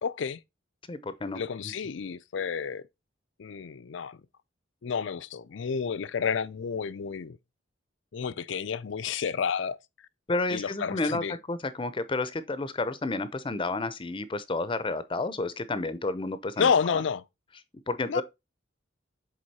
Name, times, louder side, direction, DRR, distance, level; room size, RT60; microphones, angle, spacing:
voice 1, 0.0-0.4 1.4-2.8 3.4-4.2 4.8-7.4 8.1-9.8 10.5-11.3 16.6-17.2 18.1-18.2, left 6 dB, 75° left, 0.5 m, -30 dB
voice 2, 0.9-1.4 10.3-11.2 11.5-17.0 17.9-18.2, left 2 dB, 25° left, 0.6 m, -31 dB
7.7 x 3.6 x 4.1 m
head